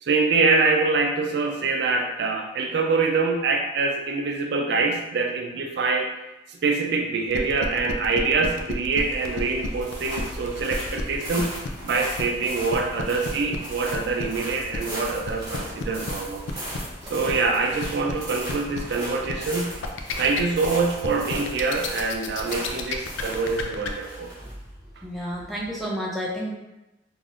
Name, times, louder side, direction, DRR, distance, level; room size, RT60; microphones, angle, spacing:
voice 1, 0.0-6.1 6.5-11.5 11.8-16.4 17.1-19.7 20.2-24.3, right 4 dB, 60° right, 2 dB, 0.3 m, -25 dB
sound 1, 7.3-23.9, left 4 dB, 90° left, 0.4 m, -32 dB
sound 2, 8.9-25.8, equal, 20° right, 1.1 m, -38 dB
voice 2, 25.0-26.5, equal, ahead, -4 dB, 0.4 m, -31 dB
3.4 x 2.5 x 2.4 m, 0.97 s
head